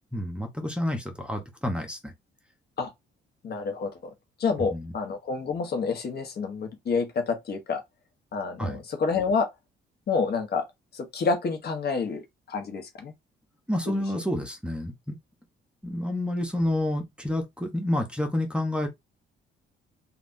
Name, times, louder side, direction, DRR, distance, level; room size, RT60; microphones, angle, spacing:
voice 1, 0.1-2.1 4.7-4.9 8.6-8.8 13.7-15.2 15.8-18.9, left 1 dB, 5° right, 0.8 m, -29 dB
voice 2, 3.4-4.1 4.4-7.8 8.3-9.5 10.1-10.6 10.9-13.1, left 4 dB, 55° left, 1.0 m, -28 dB
3.4 x 2.4 x 2.6 m
cardioid pair, 90°, 20 cm